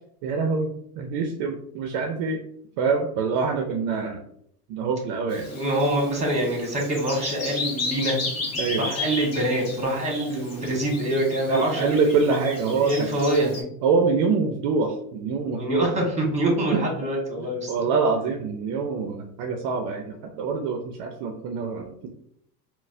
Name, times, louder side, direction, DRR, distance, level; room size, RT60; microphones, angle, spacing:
voice 1, 0.2-2.4 2.8-4.2 4.7-5.5 8.6-8.9 11.5-13.1 13.8-15.9 16.7-16.8 17.4-22.1, right 4 dB, 55° right, 4 dB, 0.6 m, -25 dB
Bird vocalization bird call bird song, 5.3-13.6, left 3 dB, 30° left, 1.0 m, -34 dB
voice 2, 5.5-8.2 8.8-12.2 12.8-13.7 15.5-17.7, right 1 dB, 15° right, 0 dB, 1.3 m, -25 dB
3.8 x 2.1 x 2.5 m, 0.70 s
hypercardioid pair, 90°, 50 cm